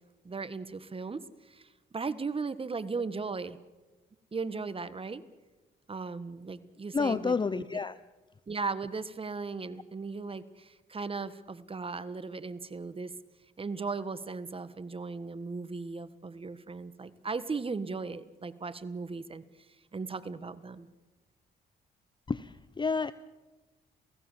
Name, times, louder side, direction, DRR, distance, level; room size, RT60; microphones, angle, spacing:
voice 1, 0.2-1.7 1.9-3.6 4.3-5.2 5.9-7.6 8.5-13.1 13.6-19.4 19.9-20.9, right 4 dB, 30° right, 15 dB, 1.5 m, -37 dB
voice 2, 6.9-8.0 22.3-23.1, left 4 dB, 25° left, 16 dB, 0.7 m, -30 dB
28.5 x 17.0 x 7.4 m, 1.2 s
cardioid pair, 70°, 18 cm